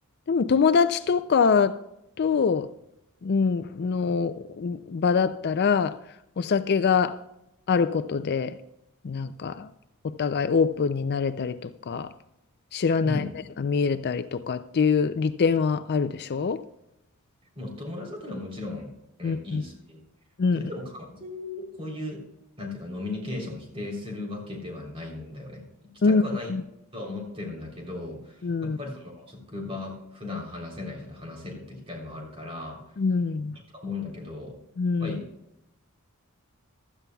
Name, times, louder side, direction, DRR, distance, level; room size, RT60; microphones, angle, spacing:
voice 1, 0.3-1.8 2.2-2.7 3.2-6.0 6.4-7.2 7.7-8.6 9.0-9.7 10.0-12.1 12.7-13.2 13.6-16.6 19.2-19.6 20.4-20.6 26.0-26.2 26.5-26.6 28.4-28.8 33.0-33.6 34.8-35.2, left 5 dB, 50° left, 12 dB, 0.4 m, -24 dB
voice 2, 13.0-13.4 17.6-18.9 19.2-20.0 20.5-22.2 22.6-25.7 26.0-26.5 26.9-32.9 33.7-34.6 35.0-35.3, left 2 dB, 25° right, 0 dB, 3.5 m, -36 dB
16.0 x 12.5 x 2.3 m, 0.84 s
head